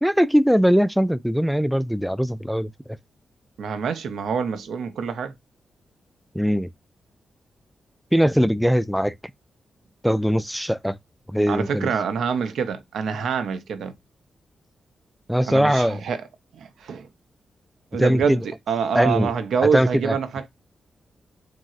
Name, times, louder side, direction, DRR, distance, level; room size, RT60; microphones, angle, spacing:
voice 1, 0.0-2.7 6.3-6.7 8.1-9.1 10.0-11.0 11.3-11.9 15.3-16.0 18.0-18.4 18.9-19.3 19.6-20.2, equal, ahead, 0.3 m, -20 dB
voice 2, 3.6-5.3 11.5-13.9 15.4-16.2 16.5-17.1 17.9-20.5, right 6 dB, 80° right, 0.5 m, -26 dB
3.0 x 2.6 x 2.4 m
supercardioid pair, 45°, 0 cm